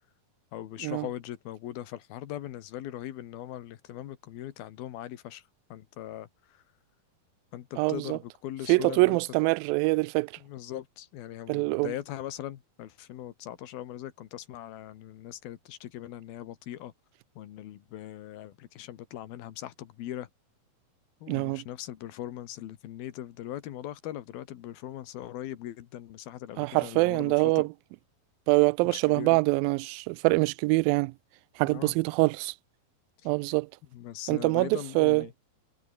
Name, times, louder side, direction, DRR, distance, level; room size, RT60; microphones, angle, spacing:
voice 1, 0.5-5.4 5.7-6.3 6.5-6.6 7.5-9.2 10.4-16.9 17.4-20.3 21.2-27.6 28.8-29.4 31.6-31.9 33.9-35.3, left 12 dB, 80° left, 3.4 m, -40 dB
voice 2, 7.8-8.2 8.7-10.4 11.5-11.9 21.3-21.6 26.6-27.7 28.5-31.1 31.6-32.6 33.3-33.7 34.3-35.3, right 25 dB, 80° right, 2.2 m, -24 dB
omnidirectional pair, 4.3 m